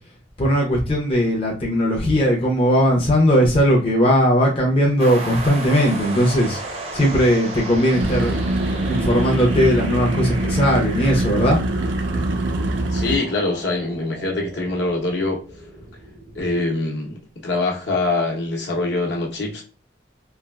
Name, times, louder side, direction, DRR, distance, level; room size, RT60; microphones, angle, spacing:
voice 1, 0.4-6.6 6.9-8.3 8.8-11.6, equal, 30° left, 0.6 m, -18 dB
sound 1, 5.0-16.6, right 2 dB, 35° right, 0.6 m, -35 dB
sound 2, 7.9-13.2, right 2 dB, 80° right, 0.4 m, -23 dB
voice 2, 12.9-15.4 16.4-19.6, left 2 dB, 70° left, 0.8 m, -24 dB
3.3 x 2.4 x 2.2 m
head